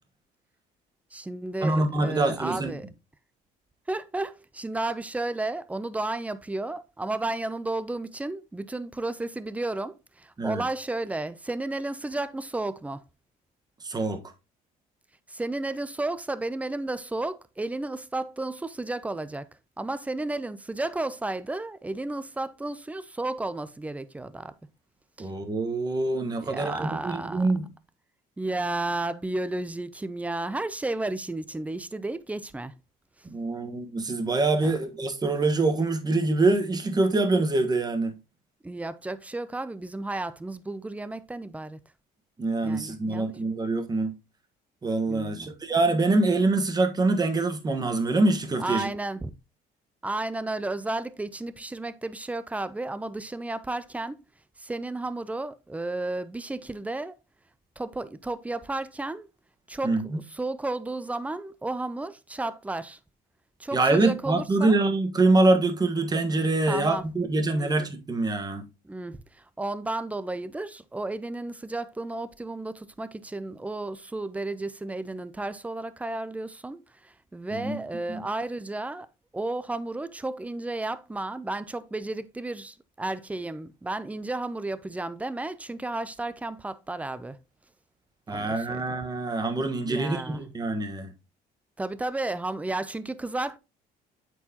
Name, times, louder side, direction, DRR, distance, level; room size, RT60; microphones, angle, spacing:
voice 1, 1.1-2.9 3.9-13.0 15.3-19.5 19.8-24.5 25.2-25.3 26.4-27.5 28.4-32.7 34.6-34.8 38.6-41.8 42.6-43.3 45.1-45.5 48.6-49.3 50.0-54.2 54.6-57.1 57.8-59.3 59.7-63.0 63.6-64.8 66.7-67.0 67.5-67.7 68.8-79.1 79.3-87.4 88.3-88.8 89.9-90.4 91.8-93.6, right 2 dB, 10° right, 0.5 m, -33 dB
voice 2, 1.6-2.7 10.4-10.6 13.8-14.2 25.2-27.7 33.2-38.1 42.4-44.1 44.8-48.9 59.8-60.2 63.7-68.6 77.5-77.8 78.1-78.2 88.3-91.1, right 2 dB, 25° right, 1.3 m, -25 dB
8.3 x 4.6 x 2.9 m
cardioid pair, 110°, 17 cm